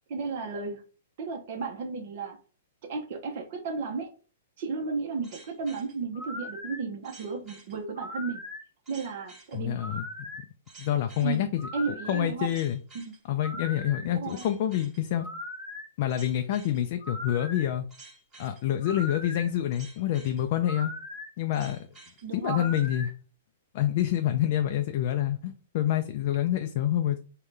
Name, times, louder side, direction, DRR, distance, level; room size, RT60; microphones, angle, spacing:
voice 1, 0.1-0.8 1.2-2.4 2.8-4.1 4.6-8.4 8.9-9.8 11.2-11.4 11.7-12.5 13.0-13.1 14.1-14.5 22.2-22.7, right 4 dB, 55° right, 2 dB, 0.7 m, -33 dB
sound 1, 5.2-23.1, left 1 dB, 15° right, 1.2 m, -41 dB
voice 2, 9.5-10.1 10.8-11.7 12.1-12.8 13.3-15.3 16.0-17.9 18.4-20.9 21.4-21.8 22.3-23.1 23.7-27.2, left 11 dB, 50° left, 6 dB, 0.3 m, -27 dB
3.7 x 2.2 x 3.2 m, 0.37 s
hypercardioid pair, 140°, 0 cm